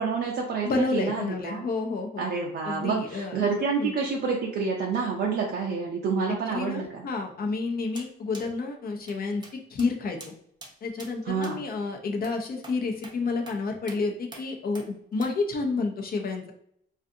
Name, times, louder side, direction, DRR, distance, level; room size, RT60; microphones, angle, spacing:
voice 1, 0.0-1.6 2.2-7.1 11.2-11.6, right 5 dB, 55° right, -1 dB, 0.5 m, -28 dB
voice 2, 0.6-2.2 2.6-3.4 3.8-3.9 6.5-9.4 9.7-10.3 10.8-16.5, left 3 dB, 50° left, 3 dB, 0.6 m, -30 dB
sound 1, 8.0-8.1 8.3-8.5 9.1-9.2 9.4-9.5 9.8-9.9 10.2-10.3 10.6-10.7 11.0-11.1 11.4-11.6 12.2-12.4 12.6-12.8 13.0-13.2 13.5-13.6 13.9-14.0 14.3-14.5 14.8-14.9 15.2-15.3, right 2 dB, 20° right, 0.7 m, -44 dB
2.4 x 2.4 x 2.6 m, 0.69 s
cardioid pair, 90°, 20 cm